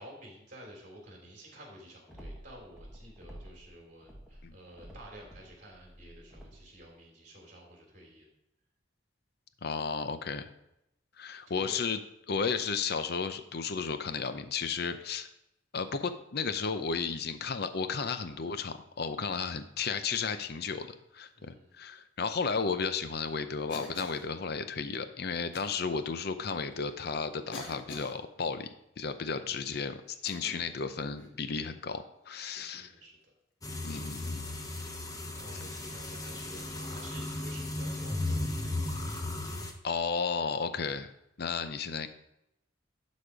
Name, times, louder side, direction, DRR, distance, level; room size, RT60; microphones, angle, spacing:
voice 1, 0.0-8.3 11.5-11.9 21.3-21.7 29.4-29.7 30.4-30.7 32.8-33.3 35.3-38.9, equal, 45° right, -1 dB, 3.2 m, -51 dB
sound 1, 2.1-3.7 4.0-6.8, equal, 5° right, 1.4 m, -50 dB
voice 2, 9.6-10.5 11.2-12.0 12.3-15.3 15.7-28.7 29.0-32.9 33.8-34.5 39.8-41.1 41.4-42.1, left 5 dB, 60° left, 10 dB, 0.6 m, -33 dB
Cough, 23.7-24.3 25.5-25.7 26.6-26.7 27.5-28.2 30.1-30.7 31.2-31.4 32.5-32.9 33.9-34.3 35.7-36.0 38.2-38.4 40.1-40.3, left 2 dB, 85° left, 1.6 m, -47 dB
sound 2, 33.6-39.7, left 2 dB, 20° left, 0.9 m, -36 dB
11.5 x 4.2 x 4.9 m, 0.84 s
head